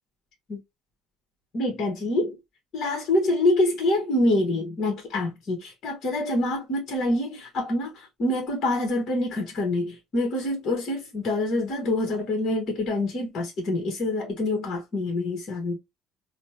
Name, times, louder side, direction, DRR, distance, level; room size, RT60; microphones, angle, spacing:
voice 1, 1.5-2.4 2.7-15.8, left 1 dB, 50° left, 1.2 m, -26 dB
4.2 x 2.2 x 2.9 m
hypercardioid pair, 55°, 0 cm